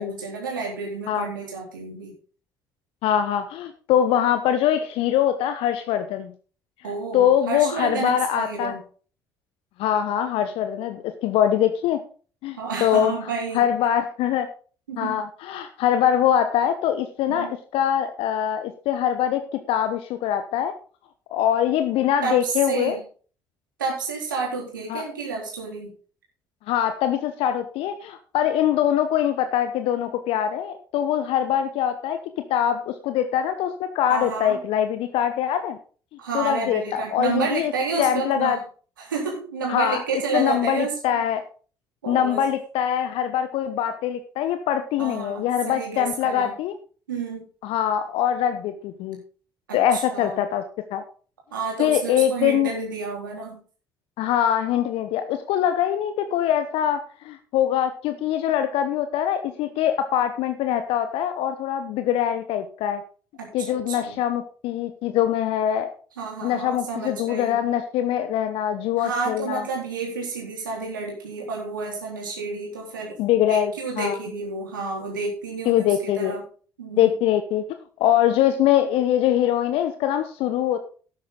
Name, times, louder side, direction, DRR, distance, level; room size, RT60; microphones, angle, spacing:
voice 1, 0.0-2.1 6.8-8.8 12.5-13.7 14.9-15.2 17.3-17.5 22.2-23.0 23.8-25.9 34.1-34.6 36.2-38.6 39.0-41.2 42.0-42.5 45.0-46.6 47.1-47.4 49.7-50.5 51.5-53.6 63.4-64.2 66.2-67.6 69.0-73.2 73.5-76.4 76.8-77.1, right 4 dB, 80° right, -1 dB, 3.8 m, -30 dB
voice 2, 3.0-6.3 7.1-8.7 9.8-12.0 12.4-13.1 13.5-14.5 15.0-20.7 21.3-23.0 24.9-25.0 26.7-32.2 32.5-35.8 36.3-37.7 38.0-38.6 39.7-40.0 40.3-41.4 42.1-46.7 47.6-49.2 49.7-50.6 50.9-51.0 51.8-52.7 54.2-63.0 63.5-65.9 66.4-69.7 73.2-74.2 75.7-76.4 77.0-77.6 78.0-80.8, left 10 dB, 60° left, 9 dB, 0.9 m, -23 dB
12.5 x 9.3 x 3.9 m, 0.40 s
figure-of-eight pair, 50°, 11 cm